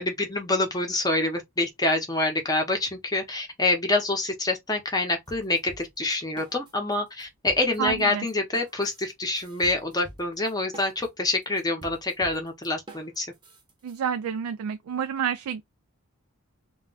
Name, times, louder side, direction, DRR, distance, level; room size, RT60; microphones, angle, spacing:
voice 1, 0.0-13.3, left 2 dB, 15° left, 0.6 m, -26 dB
sound 1, 5.3-6.9 7.2-14.0, right 1 dB, 20° right, 0.7 m, -47 dB
voice 2, 7.8-8.2 13.8-15.6, right 8 dB, 75° right, 0.3 m, -29 dB
2.2 x 2.1 x 3.7 m
head